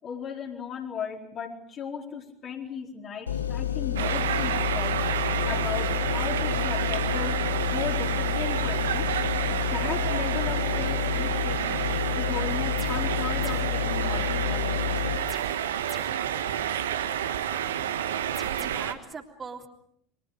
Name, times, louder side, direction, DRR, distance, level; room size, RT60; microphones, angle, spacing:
voice 1, 0.0-5.0 5.5-7.4 7.7-9.1 9.5-11.7 12.1-14.9, left 7 dB, 35° left, 0 dB, 4.5 m, -36 dB
sound 1, 3.3-15.2, left 10 dB, 80° left, 1.4 m, -29 dB
sound 2, 4.0-18.9, right 10 dB, 70° right, 1.4 m, -29 dB
sound 3, 12.8-13.1 13.4-13.8 15.3-16.3 18.3-18.7, left 1 dB, 10° left, 2.9 m, -46 dB
voice 2, 18.2-19.7, right 5 dB, 25° right, 1 dB, 3.3 m, -41 dB
30.0 x 24.0 x 5.1 m, 0.67 s
figure-of-eight pair, 75°, 0 cm